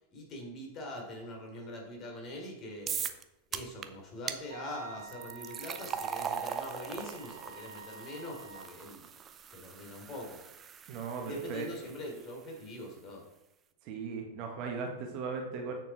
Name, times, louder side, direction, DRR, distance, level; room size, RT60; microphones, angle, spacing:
voice 1, 0.1-3.1 3.5-9.1 9.5-10.4 11.2-13.2, left 1 dB, 30° left, 1 dB, 3.4 m, -43 dB
sound 1, 2.9-3.2 3.5-3.9 4.3-4.4 5.1-12.2, right 7 dB, 25° right, 0.7 m, -40 dB
Wind instrument woodwind instrument, 4.5-8.8, right 5 dB, 60° right, 0.9 m, -49 dB
voice 2, 10.9-11.7 13.8-15.7, right 5 dB, 40° right, 2 dB, 1.6 m, -37 dB
9.3 x 6.9 x 4.2 m, 0.92 s
figure-of-eight pair, 90°, 0 cm